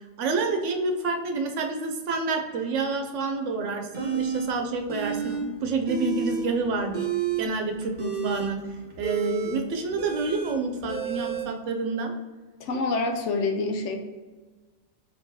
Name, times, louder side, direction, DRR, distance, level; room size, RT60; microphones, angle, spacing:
voice 1, 0.2-7.1 7.4-8.6 9.0-12.1, right 3 dB, 85° right, 4 dB, 1.0 m, -28 dB
sound 1, 3.9-4.5 4.9-5.4 5.7-6.5 6.8-11.5, right 7 dB, 45° right, 1.1 m, -31 dB
voice 2, 12.6-14.0, left 3 dB, 80° left, 4 dB, 1.0 m, -26 dB
4.5 x 3.7 x 2.8 m, 1.3 s
omnidirectional pair, 1.2 m